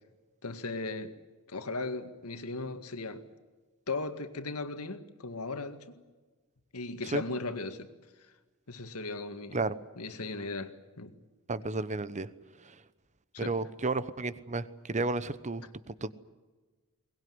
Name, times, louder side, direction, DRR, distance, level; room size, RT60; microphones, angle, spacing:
voice 1, 0.4-1.1 1.5-3.2 3.9-6.0 6.7-7.9 8.7-9.7 10.0-11.1 13.3-13.6, left 3 dB, 85° left, 2.0 m, -37 dB
voice 2, 11.5-12.3 12.6-12.8 13.4-16.1, right 3 dB, 35° right, 1.0 m, -32 dB
23.0 x 20.0 x 9.6 m
head